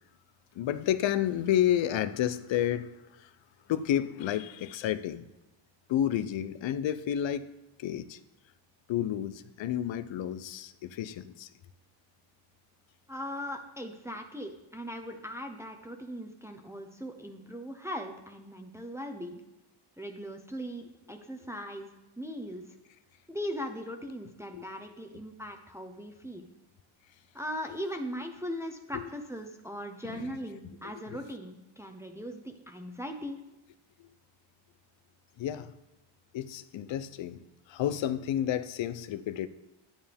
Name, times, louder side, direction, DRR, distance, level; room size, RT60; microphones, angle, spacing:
voice 1, 0.5-2.9 3.2-3.3 3.7-5.3 5.9-7.4 7.8-8.2 8.9-11.5 24.5-24.6 28.9-29.1 30.0-30.3 30.8-31.2 34.0-34.1 35.4-35.7 36.3-39.5, left 11 dB, 65° left, 14 dB, 0.7 m, -31 dB
voice 2, 13.1-19.4 20.0-21.9 22.2-22.6 23.3-26.5 27.3-33.4, equal, 5° right, 4 dB, 0.8 m, -39 dB
9.3 x 8.9 x 3.5 m, 0.96 s
cardioid pair, 85°, 49 cm